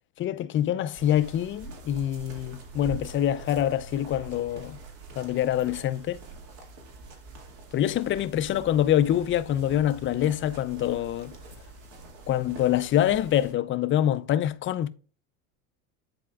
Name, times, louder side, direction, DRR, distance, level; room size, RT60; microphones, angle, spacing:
voice 1, 0.2-4.8 5.2-6.2 7.7-11.3 12.3-14.9, left 11 dB, 30° left, 0.4 m, -25 dB
sound 1, 0.9-13.5, right 2 dB, 65° right, 2.2 m, -44 dB
10.5 x 4.3 x 2.4 m
supercardioid pair, 100°, 40 cm